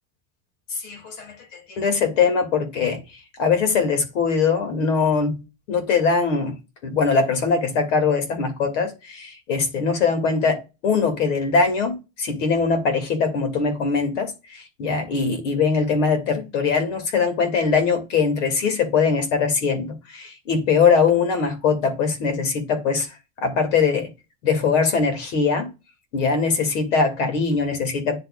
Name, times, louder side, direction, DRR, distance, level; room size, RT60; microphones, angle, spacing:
voice 1, 0.8-1.3 1.7-3.0 3.4-5.4 5.7-6.6 6.8-23.1 23.4-24.1 24.4-25.7 26.1-28.2, left 5 dB, 85° left, 2.4 m, -21 dB
10.0 x 4.1 x 2.4 m
supercardioid pair, 115°, 36 cm